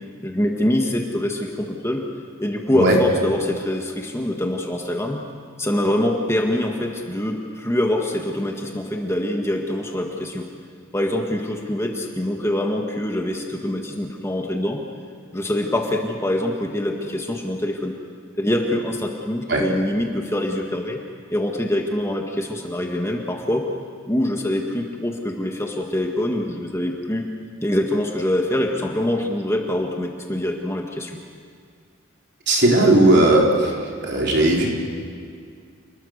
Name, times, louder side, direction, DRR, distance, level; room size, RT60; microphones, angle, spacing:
voice 1, 0.2-2.1 2.4-5.2 5.6-10.4 10.9-14.8 15.3-17.9 18.4-21.0 21.3-23.7 24.1-27.2 27.6-31.1, left 1 dB, 15° left, 1 dB, 1.7 m, -24 dB
voice 2, 32.5-33.7 34.0-34.7, right 1 dB, 55° right, -1 dB, 4.2 m, -16 dB
28.5 x 21.0 x 6.7 m, 2.2 s
head